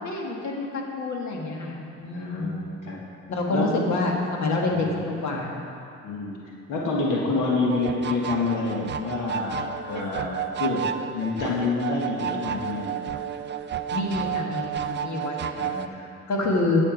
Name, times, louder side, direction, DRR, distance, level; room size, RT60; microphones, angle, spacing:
voice 1, 0.0-2.6 3.3-5.5 13.9-15.6 15.9-16.8, left 2 dB, 65° left, -1 dB, 1.7 m, -27 dB
voice 2, 2.1-3.0 3.5-3.8 4.7-5.1 6.0-6.4 6.7-13.0 15.5-15.9, left 3 dB, 90° left, -3 dB, 1.5 m, -28 dB
sound 1, 7.7-15.9, right 8 dB, 35° right, 0.4 m, -31 dB
10.0 x 6.9 x 5.2 m, 2.7 s
cardioid pair, 90°, 30 cm